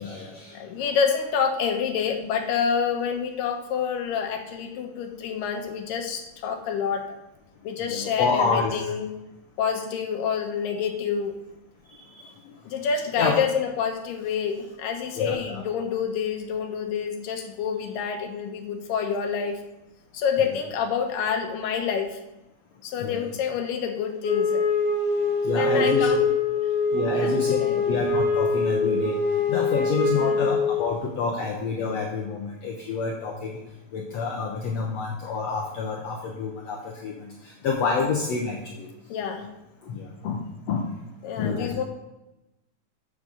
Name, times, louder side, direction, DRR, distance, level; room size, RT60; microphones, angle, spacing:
voice 1, 0.0-0.6 7.9-8.9 12.2-12.3 13.2-13.4 15.1-15.6 20.4-20.6 23.0-23.3 25.4-26.3 26.9-29.2 29.5-33.6 33.9-38.9 39.8-40.9 41.4-41.7, left 5 dB, 65° left, 0 dB, 1.9 m, -28 dB
voice 2, 0.5-7.1 7.6-9.1 9.6-11.4 12.7-19.6 20.1-22.2 22.8-24.6 25.5-26.2 27.1-27.8 30.2-30.4 39.1-39.5 41.2-41.8, left 7 dB, 85° left, 4 dB, 2.8 m, -27 dB
Wind instrument woodwind instrument, 24.2-31.0, left 3 dB, 35° left, 0.9 m, -24 dB
9.6 x 8.2 x 3.9 m, 0.97 s
omnidirectional pair, 3.8 m